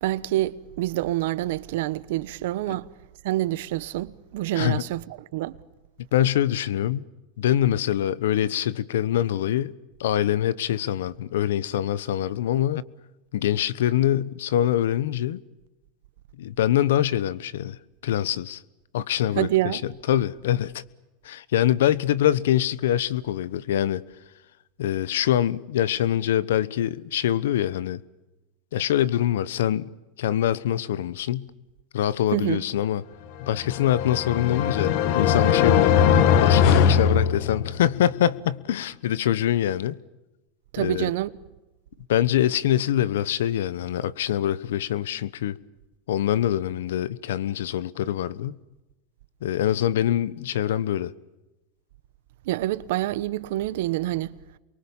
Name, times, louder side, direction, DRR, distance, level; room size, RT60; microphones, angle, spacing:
voice 1, 0.0-2.9 3.2-5.6 19.4-19.8 32.3-32.6 40.7-41.3 52.4-54.4, right 15 dB, 75° right, 1.1 m, -27 dB
voice 2, 6.1-7.0 7.4-9.7 10.0-12.8 13.3-15.4 16.4-18.6 18.9-19.8 20.1-20.8 21.2-24.0 24.8-28.0 28.7-29.9 30.2-31.5 31.9-33.0 33.4-36.0 36.4-40.0 40.8-41.1 42.1-45.6 46.1-48.6 49.4-51.1, left 11 dB, 85° left, 1.1 m, -24 dB
sound 1, 33.5-38.0, left 8 dB, 60° left, 1.8 m, -20 dB
29.0 x 23.0 x 7.2 m
supercardioid pair, 115°, 0 cm